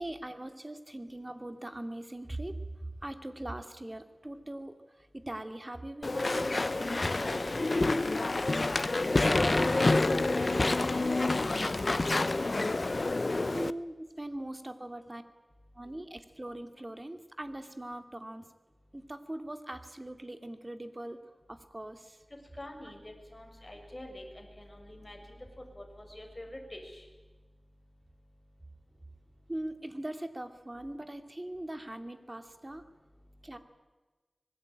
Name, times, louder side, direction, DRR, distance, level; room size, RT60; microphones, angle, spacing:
voice 1, 0.0-2.7 3.0-6.6 13.5-15.2 15.8-18.5 18.9-21.2 21.5-22.2 29.5-32.8 33.4-33.6, right 1 dB, 30° right, 8 dB, 2.6 m, -41 dB
Walk footsteps / Chatter / Squeak, 6.0-13.7, left 2 dB, 60° left, 0.8 m, -28 dB
voice 2, 7.1-10.3 22.6-25.2 25.7-27.0, left 1 dB, 30° left, 2 dB, 6.5 m, -45 dB
sound 1, 9.3-12.6, equal, ahead, 3.4 m, -40 dB
25.0 x 20.5 x 9.1 m, 1.2 s
wide cardioid pair, 50°, 0 cm